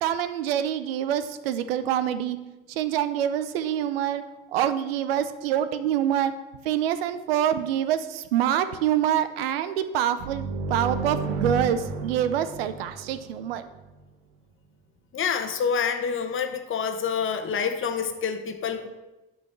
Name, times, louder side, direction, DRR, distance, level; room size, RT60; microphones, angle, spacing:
voice 1, 0.0-2.4 2.8-4.2 4.5-6.3 6.7-13.6, right 10 dB, 85° right, 12 dB, 0.6 m, -26 dB
sound 1, 10.2-13.8, right 4 dB, 65° right, 1.0 m, -32 dB
voice 2, 15.1-18.9, left 6 dB, 45° left, 7 dB, 1.1 m, -27 dB
8.0 x 5.4 x 5.9 m, 1.1 s
hypercardioid pair, 70°, 29 cm